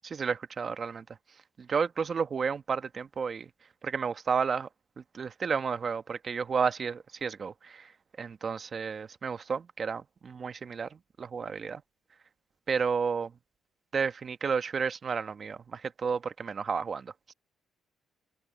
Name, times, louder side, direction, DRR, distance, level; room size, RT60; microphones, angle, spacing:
voice 1, 0.0-1.0 1.6-3.5 3.8-4.7 5.1-7.9 8.2-11.8 12.7-13.3 13.9-17.1, right 6 dB, 45° right, 1.3 m, -32 dB
open air
cardioid pair, 80°, 0 cm